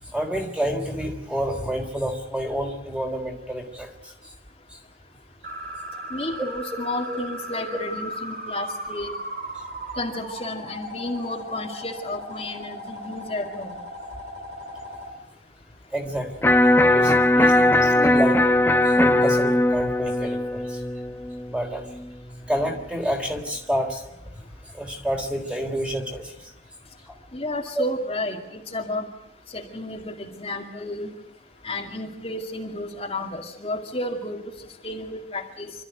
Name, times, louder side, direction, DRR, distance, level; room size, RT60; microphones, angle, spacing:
voice 1, 0.0-4.1 6.7-6.8 7.1-7.2 15.9-16.5 16.9-18.4 18.8-20.8 21.5-21.8 22.5-24.0 24.7-26.5 27.8-27.9, equal, 5° right, 3 dB, 3.7 m, -29 dB
sound 1, 5.4-15.1, equal, 50° right, 3.5 m, -37 dB
voice 2, 6.1-9.2 10.0-13.8 27.3-29.1 29.5-31.1 31.6-34.4 34.8-35.7, left 1 dB, 35° left, 0 dB, 2.3 m, -32 dB
Electric guitar, 16.4-22.5, left 1 dB, 15° left, 1.0 m, -20 dB
27.0 x 13.5 x 9.3 m, 0.93 s
head